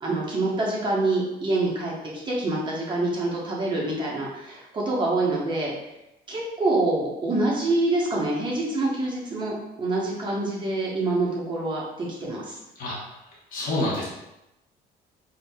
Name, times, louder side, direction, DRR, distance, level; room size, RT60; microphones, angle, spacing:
voice 1, 0.0-1.9 2.3-5.7 6.3-12.6, right 2 dB, 30° right, -4 dB, 1.0 m, -26 dB
voice 2, 13.5-14.0, left 1 dB, 55° left, -6 dB, 1.1 m, -27 dB
5.0 x 2.7 x 2.3 m, 0.91 s
cardioid pair, 110°, 17 cm